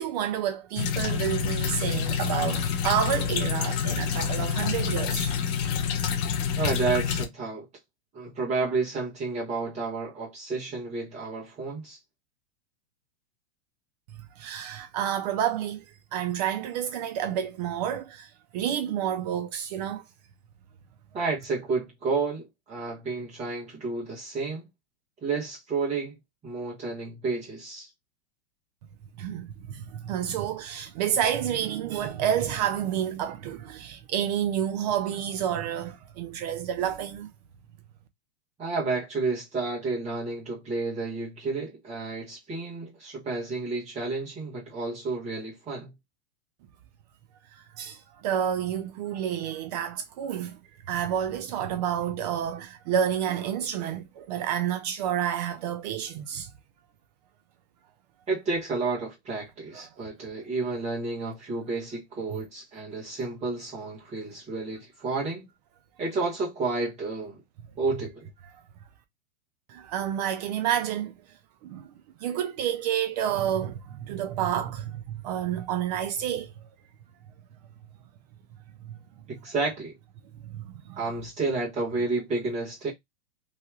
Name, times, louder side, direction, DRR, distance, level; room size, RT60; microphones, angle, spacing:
voice 1, 0.0-5.3 14.4-15.8 16.1-20.0 29.2-37.3 47.8-50.6 50.9-56.5 59.7-59.9 69.7-71.1 71.6-71.9 72.2-76.5 78.8-78.9 80.5-80.6 80.9-81.0, right 9 dB, 40° right, 0.4 m, -29 dB
sound 1, 0.8-7.2, left 7 dB, 25° left, 0.4 m, -27 dB
voice 2, 6.6-7.7 8.1-12.0 21.1-24.6 25.2-26.2 26.4-27.9 38.6-45.9 58.3-65.4 66.0-67.4 67.8-68.3 79.3-79.9 81.0-82.9, right 3 dB, 20° right, 1.5 m, -31 dB
3.1 x 2.8 x 2.2 m
supercardioid pair, 145°, 33 cm